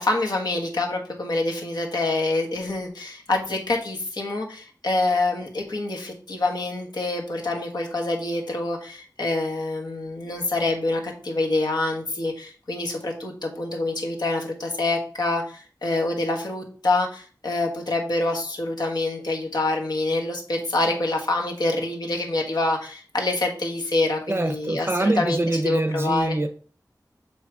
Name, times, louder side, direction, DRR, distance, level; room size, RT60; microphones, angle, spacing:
voice 1, 0.0-26.4, left 2 dB, 80° left, 0 dB, 1.5 m, -26 dB
voice 2, 24.3-26.5, right 2 dB, 35° right, 7 dB, 0.6 m, -24 dB
7.0 x 3.2 x 4.7 m, 0.41 s
wide cardioid pair, 70°, 7 cm